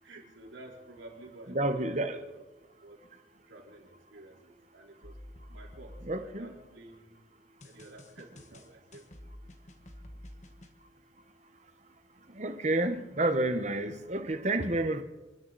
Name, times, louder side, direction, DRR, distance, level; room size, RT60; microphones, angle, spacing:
voice 1, 0.0-2.4 2.8-3.0 3.5-5.2 5.5-7.2 7.6-9.1, right 2 dB, 90° right, -2 dB, 4.3 m, -51 dB
voice 2, 1.5-2.2 6.0-6.5 12.3-15.0, right 2 dB, 35° right, 9 dB, 1.1 m, -29 dB
sound 1, 5.0-6.9 7.6-10.7, left 1 dB, 40° left, 1.4 m, -50 dB
27.0 x 12.0 x 4.1 m, 1.1 s
head